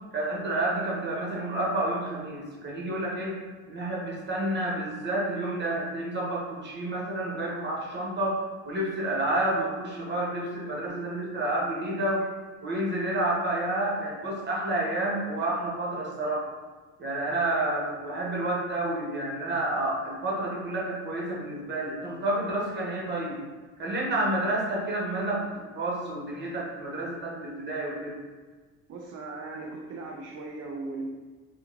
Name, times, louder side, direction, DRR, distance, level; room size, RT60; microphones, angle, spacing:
voice 1, 0.1-3.4 3.7-8.4 8.6-12.3 12.6-16.4 17.0-23.4 23.8-25.5 25.7-28.1, right 1 dB, 35° right, -4 dB, 1.3 m, -29 dB
voice 2, 28.9-31.1, right 3 dB, 50° right, -1 dB, 0.5 m, -38 dB
3.5 x 2.4 x 3.0 m, 1.4 s
supercardioid pair, 85°, 32 cm